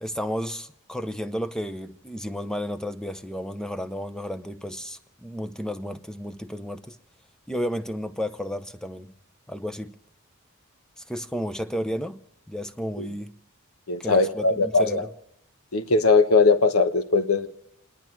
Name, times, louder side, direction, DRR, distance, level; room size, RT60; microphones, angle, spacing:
voice 1, 0.0-7.0 7.5-9.1 9.5-9.9 11.0-12.2 12.5-13.3 14.0-15.1, equal, 5° left, 0.7 m, -32 dB
voice 2, 13.9-15.0 15.7-17.5, left 3 dB, 75° left, 1.1 m, -20 dB
30.0 x 10.0 x 4.6 m
head